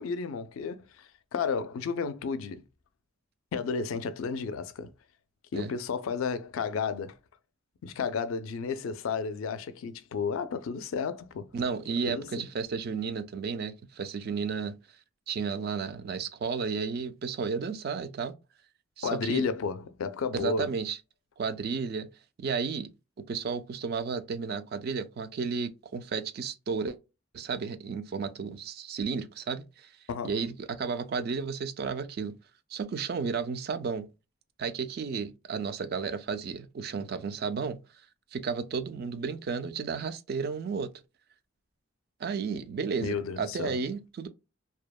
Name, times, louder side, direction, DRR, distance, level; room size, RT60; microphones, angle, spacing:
voice 1, 0.0-2.6 3.5-4.9 5.5-7.2 7.8-11.5 12.1-12.4 19.0-20.7 30.1-30.4 43.0-43.8, left 5 dB, 85° left, 0.4 m, -32 dB
voice 2, 11.5-14.8 15.3-18.3 19.0-19.5 20.3-21.0 21.4-22.1 22.4-22.9 23.3-27.0 27.3-29.9 30.2-32.3 32.7-34.1 34.6-37.8 38.3-40.9 42.2-44.3, right 5 dB, 50° right, 0.3 m, -33 dB
2.7 x 2.0 x 2.2 m
head